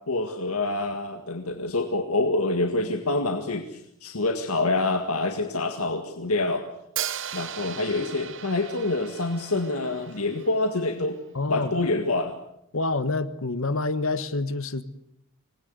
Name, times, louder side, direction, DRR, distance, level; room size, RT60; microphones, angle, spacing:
voice 1, 0.0-6.6 7.3-11.2 11.5-12.3, left 2 dB, 90° left, 2.0 m, -26 dB
Hi-hat, 7.0-10.9, right 10 dB, 60° right, 1.0 m, -37 dB
voice 2, 11.3-11.7 12.7-14.8, left 3 dB, 70° left, 1.2 m, -27 dB
26.5 x 20.5 x 8.1 m
head